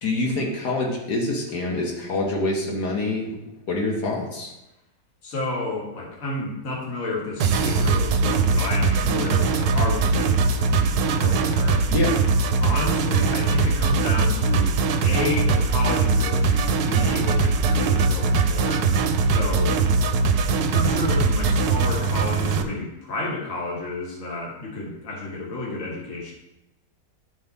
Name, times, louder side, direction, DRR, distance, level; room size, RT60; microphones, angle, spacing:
voice 1, 0.0-3.4 3.7-4.5 11.9-12.1, left 2 dB, 85° left, -2 dB, 1.8 m, -25 dB
voice 2, 5.2-11.8 12.6-18.9 19.3-19.8 20.1-26.3, left 2 dB, 55° left, -2 dB, 1.8 m, -31 dB
sound 1, 7.4-22.6, right 4 dB, 75° right, 1.1 m, -21 dB
11.0 x 3.7 x 4.0 m, 0.91 s
omnidirectional pair, 1.7 m